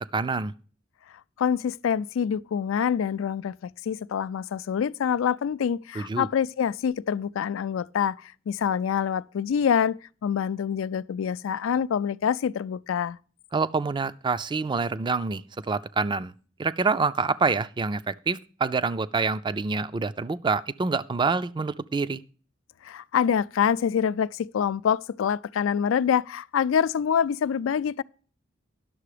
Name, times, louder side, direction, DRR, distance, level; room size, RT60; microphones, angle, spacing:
voice 1, 0.1-0.5 6.0-6.3 13.5-16.3 16.6-22.2, right 4 dB, 25° right, 0.4 m, -26 dB
voice 2, 1.4-13.2 22.8-28.0, left 7 dB, 85° left, 0.3 m, -26 dB
11.0 x 6.7 x 4.9 m
head